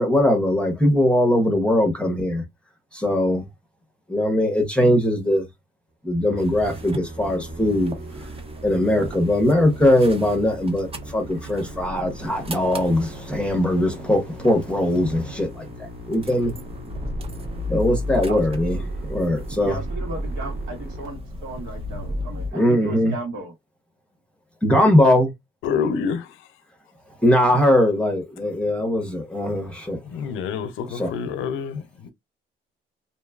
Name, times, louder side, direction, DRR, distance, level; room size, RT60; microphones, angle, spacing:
voice 1, 0.0-2.4 2.9-3.4 4.1-5.5 6.0-7.9 8.6-15.7 16.1-16.5 17.7-18.8 19.1-19.7 22.5-23.1 24.6-25.3 27.2-30.0 31.0-31.1, left 1 dB, 5° left, 0.8 m, -20 dB
Musical instrument, 6.3-21.1, equal, 50° right, 1.2 m, -40 dB
sound 1, 6.4-22.5, equal, 30° right, 0.6 m, -35 dB
voice 2, 18.1-18.5 19.6-23.5, right 2 dB, 85° right, 1.5 m, -35 dB
voice 3, 25.6-26.5 29.1-29.2 30.0-32.1, left 6 dB, 85° left, 0.5 m, -28 dB
2.7 x 2.2 x 2.2 m
cardioid pair, 90°, 20 cm